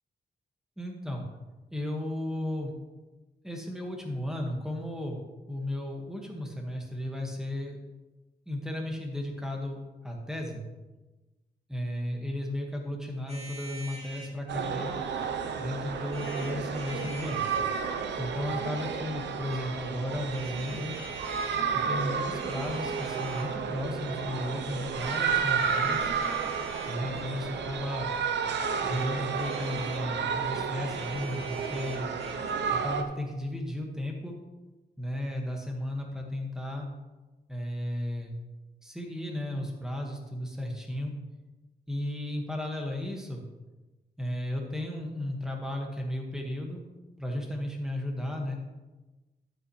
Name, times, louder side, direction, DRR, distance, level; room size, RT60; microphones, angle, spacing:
voice 1, 0.8-1.2 1.7-2.7 3.4-5.2 5.5-7.8 8.4-9.8 10.0-10.6 11.7-14.9 15.6-17.5 18.2-20.9 21.8-26.1 26.9-28.1 28.8-32.1 32.7-34.4 35.0-36.9 37.5-38.3 38.8-41.1 41.9-43.4 44.2-46.8 47.2-48.6, left 1 dB, 5° right, 1 dB, 1.7 m, -34 dB
sound 1, 13.3-14.3 16.0-17.7 19.2-19.6 20.3-21.6 22.2-23.6 24.9-27.4 28.7-30.1 30.8-32.5, right 3 dB, 35° right, 2.5 m, -45 dB
sound 2, 14.5-33.0, right 6 dB, 90° right, 0.8 m, -32 dB
11.0 x 8.9 x 3.2 m, 1.1 s
wide cardioid pair, 125°, 18 cm